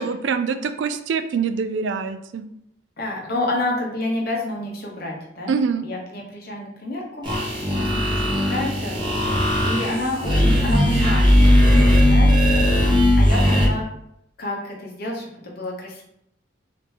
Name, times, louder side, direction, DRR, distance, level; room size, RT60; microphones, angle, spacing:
voice 1, 0.0-2.5 5.5-5.8, right 5 dB, 75° right, 9 dB, 0.3 m, -24 dB
voice 2, 3.0-5.5 5.8-7.2 7.8-11.2 11.6-12.6 13.1-13.9 14.4-16.0, left 1 dB, 55° left, -1 dB, 1.0 m, -29 dB
sound 1, 7.2-13.7, equal, 25° right, 1.1 m, -17 dB
3.2 x 3.0 x 3.3 m, 0.75 s
head